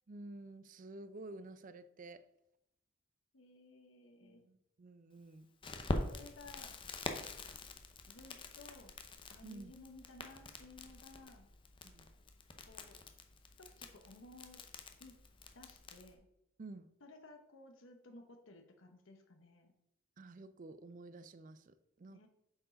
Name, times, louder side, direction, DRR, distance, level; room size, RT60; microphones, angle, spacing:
voice 1, 0.1-2.2 4.2-5.5 7.1-7.3 9.4-9.7 11.8-12.1 16.6-16.9 20.2-22.3, right 2 dB, 40° right, 13 dB, 0.4 m, -51 dB
voice 2, 3.3-4.5 6.1-6.8 8.1-8.9 9.3-11.5 12.7-13.0 13.6-14.6 15.0-15.1 15.5-16.3 17.0-19.7 22.1-22.3, left 2 dB, 70° left, 4 dB, 1.0 m, -57 dB
Crackle, 5.6-16.1, left 2 dB, 25° left, 0.7 m, -45 dB
7.5 x 4.8 x 5.1 m, 0.84 s
head